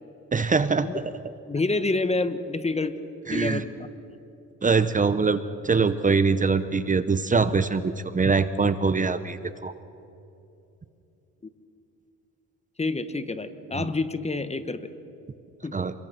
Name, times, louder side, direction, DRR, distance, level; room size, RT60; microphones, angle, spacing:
voice 1, 0.3-1.0 3.3-3.6 4.6-9.7 13.7-13.9 15.7-15.9, right 4 dB, 25° right, 13 dB, 0.9 m, -23 dB
voice 2, 1.5-2.9 3.3-3.7 12.8-14.8 15.6-15.8, left 3 dB, 20° left, 11 dB, 1.3 m, -28 dB
27.0 x 23.0 x 6.0 m, 2.8 s
cardioid pair, 90°, 30 cm